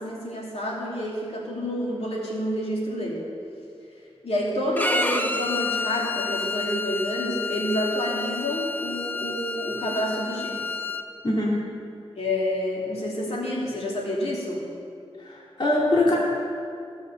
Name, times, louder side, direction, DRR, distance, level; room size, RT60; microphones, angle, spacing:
voice 1, 0.0-3.2 4.2-10.6 12.2-14.7, left 1 dB, 70° left, -4 dB, 2.8 m, -28 dB
Bowed string instrument, 4.8-11.0, left 3 dB, 15° left, 0.9 m, -29 dB
voice 2, 15.2-16.2, left 1 dB, 45° left, -5 dB, 2.3 m, -22 dB
16.0 x 6.4 x 7.1 m, 2.5 s
wide cardioid pair, 70°, 11 cm